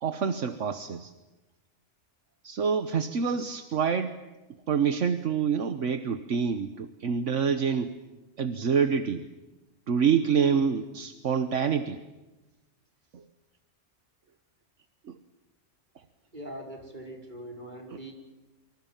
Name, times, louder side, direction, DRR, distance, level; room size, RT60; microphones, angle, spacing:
voice 1, 0.0-1.1 2.4-4.1 4.7-7.9 8.4-9.2 9.9-12.0 13.1-13.2 15.1-15.2 17.9-18.0, right 6 dB, 70° right, 10 dB, 1.5 m, -27 dB
voice 2, 16.3-18.1, right 1 dB, 35° right, 2 dB, 5.3 m, -42 dB
28.0 x 25.5 x 7.4 m, 1.1 s
omnidirectional pair, 1.3 m